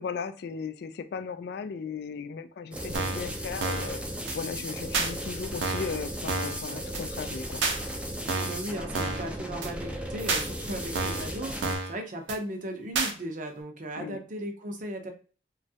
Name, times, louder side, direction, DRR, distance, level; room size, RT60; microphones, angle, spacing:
voice 1, 0.0-4.0 4.3-7.6 14.0-14.2, left 5 dB, 65° left, 10 dB, 0.3 m, -36 dB
sound 1, 2.7-11.8, equal, 5° right, 0.4 m, -36 dB
sound 2, 2.9-3.3 3.6-3.9 4.3-4.4 4.9-5.1 5.6-5.9 6.3-6.6 6.9-7.0 7.6-7.8 8.3-8.6 8.9-9.3 9.6-9.7 10.3-10.5 11.0-11.3 11.6-11.9 12.3-12.4 13.0-13.1, right 3 dB, 85° right, 0.6 m, -29 dB
voice 2, 8.3-15.1, right 1 dB, 45° right, 4 dB, 0.7 m, -36 dB
3.1 x 2.3 x 2.7 m, 0.39 s
head